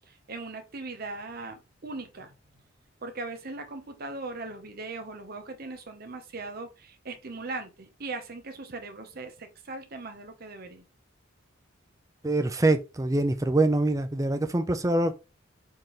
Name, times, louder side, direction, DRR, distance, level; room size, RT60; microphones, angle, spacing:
voice 1, 0.1-2.4 3.0-10.9, right 3 dB, 50° right, 0.9 m, -39 dB
voice 2, 12.2-15.1, right 2 dB, 15° right, 0.5 m, -24 dB
4.4 x 3.7 x 3.1 m
head